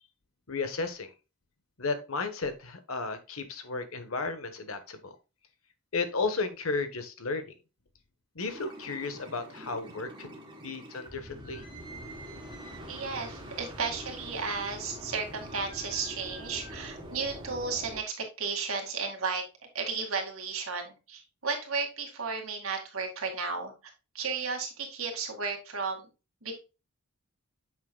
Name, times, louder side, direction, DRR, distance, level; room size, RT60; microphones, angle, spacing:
voice 1, 0.5-1.1 1.8-5.1 5.9-7.5 8.3-10.4 10.6-11.6, left 3 dB, 70° left, 9 dB, 1.2 m, -33 dB
sound 1, 8.4-18.0, equal, 20° right, 1.8 m, -44 dB
voice 2, 12.9-19.4 19.7-23.7 24.1-26.1 26.4-26.6, right 4 dB, 75° right, 3 dB, 2.1 m, -34 dB
8.3 x 6.2 x 2.3 m, 0.29 s
head